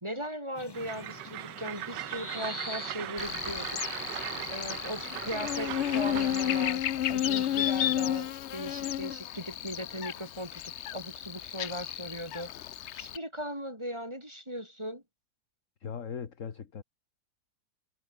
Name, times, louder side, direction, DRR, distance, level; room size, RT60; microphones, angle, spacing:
voice 1, 0.0-3.8 4.5-15.0, equal, 15° right, 4.2 m, -39 dB
sound 1, 0.5-8.2, left 2 dB, 15° left, 1.2 m, -46 dB
Train, 0.7-6.8, right 14 dB, 85° right, 1.3 m, -39 dB
Buzz, 3.2-13.2, left 11 dB, 70° left, 0.6 m, -32 dB
voice 2, 15.8-16.8, left 7 dB, 50° left, 1.7 m, -39 dB
omnidirectional pair, 1.9 m